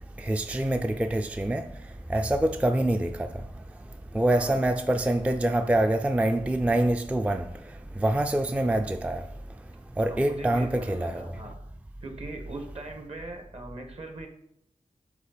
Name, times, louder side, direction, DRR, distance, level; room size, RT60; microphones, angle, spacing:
voice 1, 0.2-1.7 2.1-3.3 4.1-7.5 8.0-9.2 10.0-11.3, right 1 dB, 10° right, 0.3 m, -25 dB
voice 2, 4.3-4.6 10.1-11.6 12.0-14.3, right 2 dB, 55° right, 1.2 m, -40 dB
7.2 x 4.2 x 5.0 m
wide cardioid pair, 85°, 13 cm